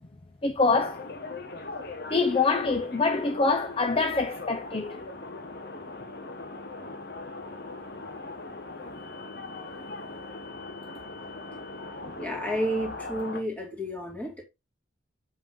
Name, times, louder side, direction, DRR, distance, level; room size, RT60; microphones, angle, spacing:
voice 1, 0.4-1.0 2.1-5.0, left 3 dB, 30° left, 0.6 m, -25 dB
sound 1, 0.8-13.4, left 3 dB, 55° left, 1.2 m, -40 dB
voice 2, 12.2-14.4, equal, 10° left, 2.4 m, -31 dB
7.9 x 5.6 x 3.7 m
head